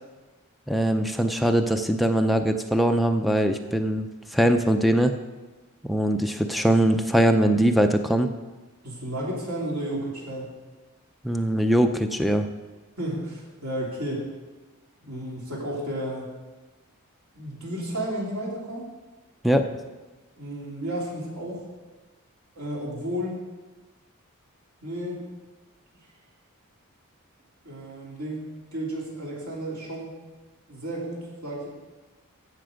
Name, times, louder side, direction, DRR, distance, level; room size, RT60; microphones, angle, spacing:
voice 1, 0.7-5.1 5.9-8.3 11.2-12.5 19.4-19.7, right 1 dB, ahead, 6 dB, 0.5 m, -22 dB
voice 2, 8.8-10.5 13.0-14.3 15.0-16.3 17.3-18.9 20.4-21.7 22.5-23.4 24.8-25.2 27.6-28.4 28.7-30.1 30.7-31.7, right 1 dB, 85° right, -4 dB, 3.1 m, -32 dB
15.5 x 5.9 x 5.1 m, 1.2 s
head